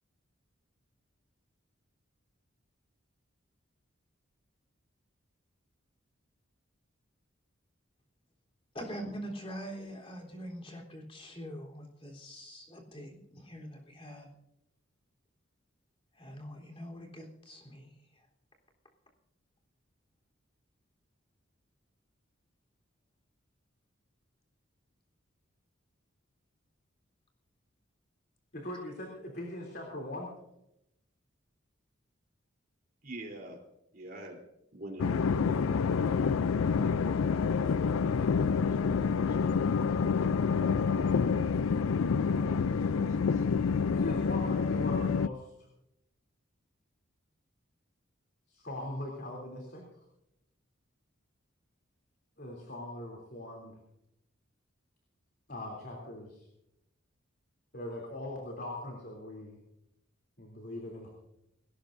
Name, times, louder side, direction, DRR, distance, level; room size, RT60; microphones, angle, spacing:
voice 1, 8.7-14.3 16.1-17.9, equal, 25° left, 0 dB, 3.6 m, -44 dB
voice 2, 28.5-30.3 43.9-45.5 48.5-49.8 52.4-53.8 55.5-56.4 57.7-59.6 60.4-61.1, left 1 dB, 50° left, 0 dB, 3.1 m, -40 dB
voice 3, 33.0-33.6 33.9-34.4 34.7-36.4 36.7-39.9 40.2-40.7 42.3-43.5, right 1 dB, 45° right, 2 dB, 3.5 m, -48 dB
sound 1, 35.0-45.3, left 5 dB, 80° left, 0.4 m, -28 dB
20.5 x 18.0 x 2.6 m, 0.82 s
head